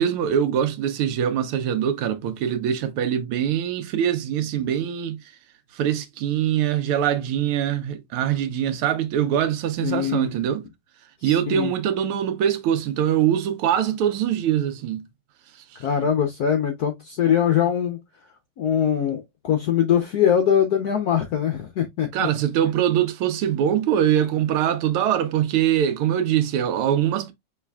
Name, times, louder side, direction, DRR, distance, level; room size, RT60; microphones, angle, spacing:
voice 1, 0.0-5.2 5.7-10.6 11.2-15.0 22.1-27.3, right 10 dB, 80° right, 1.6 m, -23 dB
voice 2, 9.8-10.3 11.2-11.7 15.8-18.0 18.6-22.3, left 9 dB, 75° left, 0.9 m, -22 dB
5.7 x 3.2 x 2.2 m
omnidirectional pair, 2.4 m